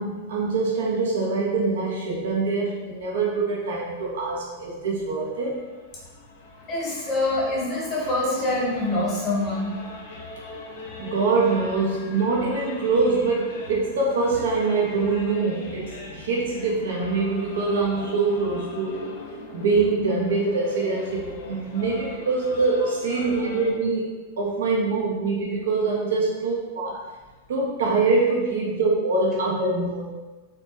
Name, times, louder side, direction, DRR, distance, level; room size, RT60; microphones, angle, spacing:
voice 1, 0.0-5.6 11.0-19.0 19.5-24.0 24.4-27.0 27.5-30.0, right 3 dB, 75° right, -3 dB, 0.5 m, -24 dB
sound 1, 5.0-23.7, left 2 dB, 70° left, 0.5 m, -40 dB
voice 2, 6.7-9.7, left 2 dB, 30° left, -5 dB, 0.8 m, -25 dB
2.1 x 2.1 x 2.9 m, 1.2 s
hypercardioid pair, 130°, 0 cm